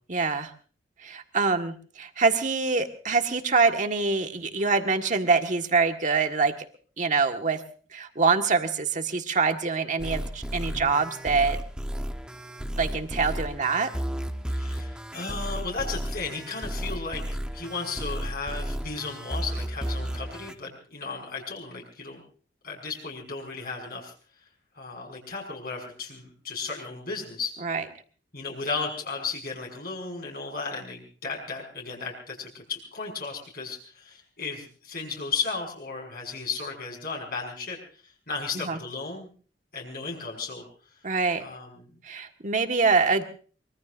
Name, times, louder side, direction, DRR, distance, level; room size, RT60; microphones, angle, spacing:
voice 1, 0.1-0.5 1.0-6.6 7.0-7.6 7.9-11.6 12.7-13.9 27.6-27.8 38.6-38.8 41.0-41.4 42.0-43.2, right 4 dB, 45° right, 6 dB, 1.6 m, -25 dB
sound 1, 10.0-20.5, equal, 5° right, 1.0 m, -33 dB
voice 2, 14.5-17.2 17.5-22.2 22.6-24.1 24.7-27.5 28.3-39.3 39.7-40.6 41.4-41.9, left 4 dB, 55° left, 0 dB, 5.8 m, -35 dB
24.5 x 23.0 x 2.6 m, 0.41 s
head